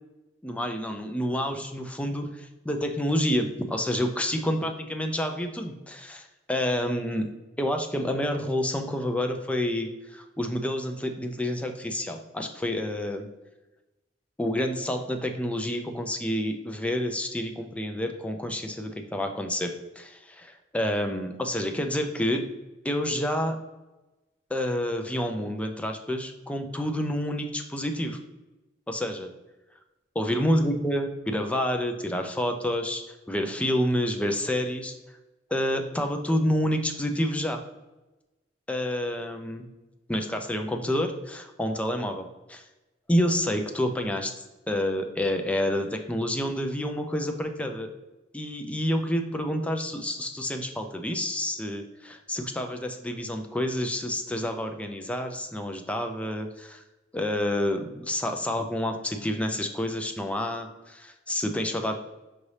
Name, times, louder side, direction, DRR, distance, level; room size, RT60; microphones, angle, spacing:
voice 1, 0.4-7.3 7.6-13.3 14.4-22.4 22.8-23.6 24.5-28.2 28.9-29.3 30.2-35.2 35.5-37.6 38.7-39.7 40.1-42.6 43.1-44.3 44.7-47.9 48.3-56.8 57.1-62.0, left 1 dB, 5° left, 5 dB, 0.4 m, -28 dB
5.8 x 2.7 x 3.2 m, 1.1 s
head